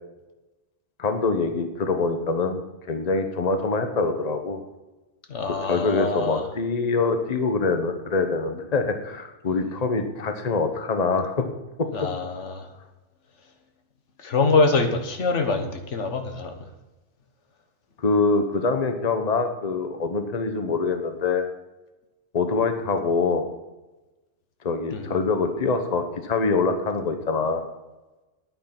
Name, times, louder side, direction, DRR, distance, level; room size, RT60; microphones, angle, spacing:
voice 1, 1.0-2.6 2.9-4.6 5.6-11.4 12.0-12.1 18.0-21.4 22.3-23.5 24.6-27.7, left 4 dB, 35° left, 7 dB, 1.1 m, -24 dB
voice 2, 5.3-6.5 11.9-12.7 14.2-16.6 24.9-25.1, left 3 dB, 80° left, 6 dB, 1.6 m, -24 dB
9.5 x 9.3 x 6.0 m, 1.1 s
omnidirectional pair, 1.2 m